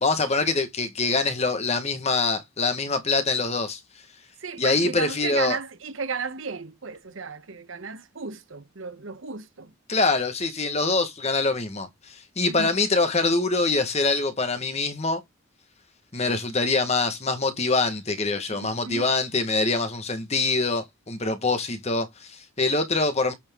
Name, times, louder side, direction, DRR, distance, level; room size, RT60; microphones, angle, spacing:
voice 1, 0.0-3.8 4.6-5.6 9.9-15.2 16.1-23.3, left 3 dB, 30° left, 1.4 m, -24 dB
voice 2, 4.4-9.7 12.5-12.7 18.5-19.1, right 5 dB, 65° right, 0.9 m, -34 dB
8.6 x 4.2 x 3.6 m
head